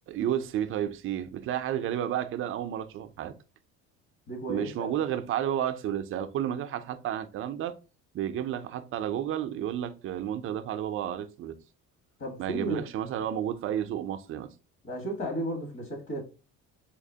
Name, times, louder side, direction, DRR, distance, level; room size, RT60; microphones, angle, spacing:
voice 1, 0.1-3.3 4.5-7.7 8.1-11.6 12.4-14.5, right 10 dB, 45° right, 0.4 m, -31 dB
voice 2, 4.3-5.0 12.2-12.8 14.8-16.2, right 1 dB, 45° left, 1.5 m, -34 dB
4.1 x 2.9 x 2.7 m
cardioid pair, 140°, 30 cm